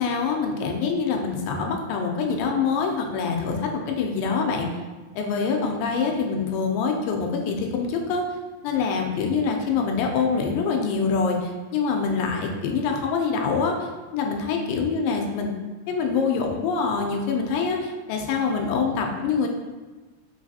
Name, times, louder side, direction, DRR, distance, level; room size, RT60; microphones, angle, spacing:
voice 1, 0.0-4.7 5.2-8.3 8.6-13.9 14.1-19.5, left 5 dB, 90° left, 2 dB, 2.3 m, -25 dB
5.2 x 3.2 x 2.7 m, 1.3 s
omnidirectional pair, 4.0 m